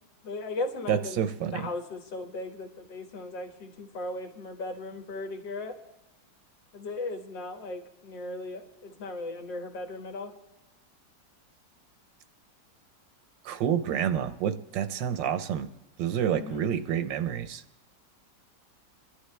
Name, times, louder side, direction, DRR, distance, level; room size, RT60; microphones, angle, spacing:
voice 1, 0.2-1.2 1.5-5.8 6.7-10.3 16.4-16.7, left 2 dB, 80° left, 3 dB, 2.1 m, -37 dB
voice 2, 0.9-1.7 13.4-15.7 16.0-17.6, right 9 dB, 85° right, 11 dB, 1.4 m, -28 dB
29.0 x 11.5 x 3.3 m, 0.96 s
omnidirectional pair, 1.9 m